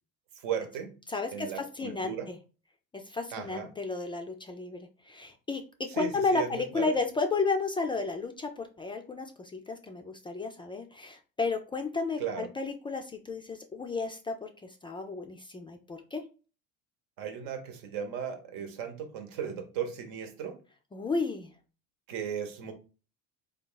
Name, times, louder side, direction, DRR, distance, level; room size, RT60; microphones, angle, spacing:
voice 1, 0.4-0.9 1.3-2.3 3.3-3.7 5.9-7.0 12.2-12.5 17.2-20.6 22.1-22.7, right 7 dB, 75° right, 1.0 m, -36 dB
voice 2, 1.1-2.4 2.9-16.2 20.9-21.5, left 3 dB, 15° left, 0.3 m, -33 dB
3.6 x 2.3 x 3.8 m
cardioid pair, 125°, 33 cm